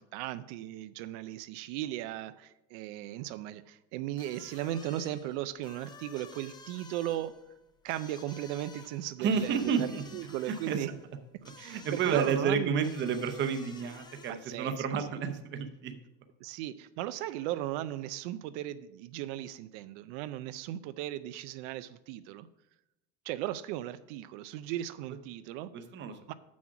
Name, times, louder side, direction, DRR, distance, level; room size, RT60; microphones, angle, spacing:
voice 1, 0.0-7.4 7.8-9.6 10.1-10.9 11.6-12.9 14.4-14.8 16.4-22.5 23.2-25.7 26.3-26.4, right 13 dB, 85° right, 12 dB, 0.5 m, -37 dB
sound 1, 4.1-14.6, left 4 dB, 15° left, 0.4 m, -53 dB
voice 2, 9.2-10.0 10.5-11.0 11.4-16.0 25.7-26.3, right 6 dB, 30° right, 7 dB, 0.8 m, -31 dB
7.2 x 6.3 x 5.9 m, 0.92 s
cardioid pair, 160°, 35 cm